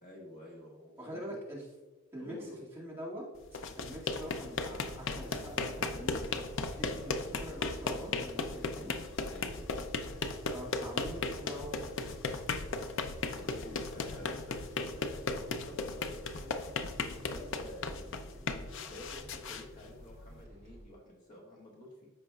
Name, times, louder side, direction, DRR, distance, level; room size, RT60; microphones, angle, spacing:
voice 1, 0.0-1.4 2.2-2.6 9.3-10.4 13.3-15.1 15.5-16.6 17.2-22.1, left 1 dB, 35° left, -3 dB, 1.6 m, -50 dB
voice 2, 1.0-1.6 2.1-3.2 3.5-8.9 10.5-12.3, equal, 10° right, -7 dB, 2.0 m, -45 dB
sound 1, 3.4-20.4, left 3 dB, 55° left, 0.5 m, -36 dB
sound 2, 4.8-20.8, equal, 30° right, 1.4 m, -54 dB
14.0 x 5.1 x 2.3 m, 1.2 s
head